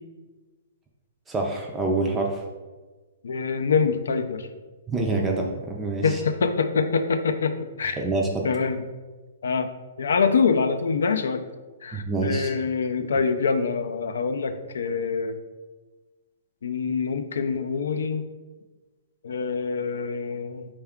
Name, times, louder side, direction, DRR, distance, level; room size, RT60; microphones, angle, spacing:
voice 1, 1.3-2.4 4.9-6.2 8.0-8.5 11.9-12.5, right 2 dB, 10° right, 1 dB, 0.4 m, -26 dB
voice 2, 3.2-4.5 6.0-8.0 8.4-8.8 9.4-9.7 10.0-11.4 11.8-15.4 16.6-18.2 19.2-20.7, left 5 dB, 85° left, 8 dB, 0.3 m, -25 dB
4.5 x 2.3 x 3.5 m, 1.3 s
hypercardioid pair, 150°, 0 cm